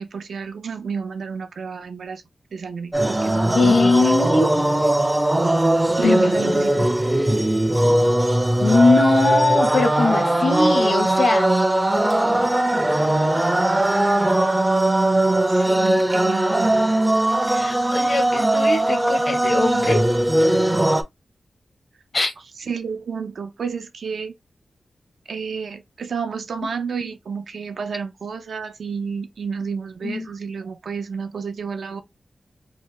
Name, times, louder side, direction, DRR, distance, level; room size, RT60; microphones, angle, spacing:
voice 1, 0.0-2.2 2.5-4.2 6.0-6.9 15.5-16.9 22.7-24.3 25.3-32.0, right 6 dB, 80° right, 0.5 m, -31 dB
sound 1, 2.9-21.0, right 1 dB, 15° right, 0.4 m, -19 dB
voice 2, 3.5-4.5 6.0-6.2 8.6-11.5 17.5-20.0 22.1-22.3 30.0-30.3, left 3 dB, 55° left, 0.8 m, -20 dB
2.7 x 2.1 x 3.2 m
wide cardioid pair, 100°, 0 cm